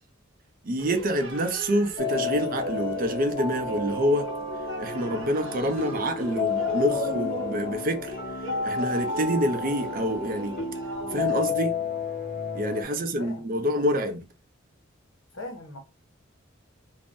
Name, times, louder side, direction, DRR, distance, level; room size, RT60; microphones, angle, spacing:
voice 1, 0.6-4.3 4.8-8.1 8.6-10.5 11.1-11.8 12.5-14.3, equal, 45° right, 0.5 m, -27 dB
sound 1, 0.8-11.5, right 2 dB, 85° right, 0.9 m, -38 dB
sound 2, 2.0-12.8, left 5 dB, 45° left, 1.0 m, -31 dB
voice 2, 12.9-13.5 15.3-15.8, left 2 dB, 90° left, 0.9 m, -41 dB
2.5 x 2.0 x 3.5 m
head